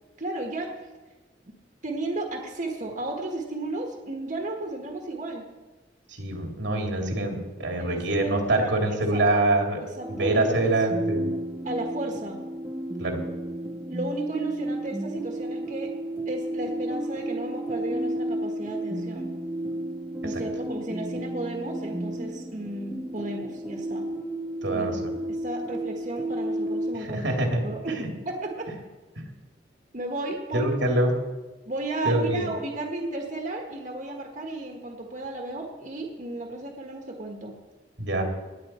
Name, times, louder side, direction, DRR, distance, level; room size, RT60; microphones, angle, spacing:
voice 1, 0.2-0.7 1.5-1.6 1.8-5.5 7.8-9.4 9.8-10.8 11.6-12.4 13.9-15.9 16.3-19.3 20.2-24.1 24.7-25.0 25.3-28.7 29.9-30.7 31.6-37.6, right 2 dB, 45° right, 1 dB, 1.5 m, -34 dB
voice 2, 6.2-9.8 10.1-11.3 13.0-13.2 24.6-24.9 27.1-27.6 28.0-28.1 30.5-31.1 32.0-32.5 38.0-38.2, right 2 dB, 90° right, 1 dB, 2.6 m, -25 dB
sound 1, 10.0-27.0, right 1 dB, 15° right, 0.7 m, -32 dB
18.0 x 9.3 x 4.4 m, 1.2 s
head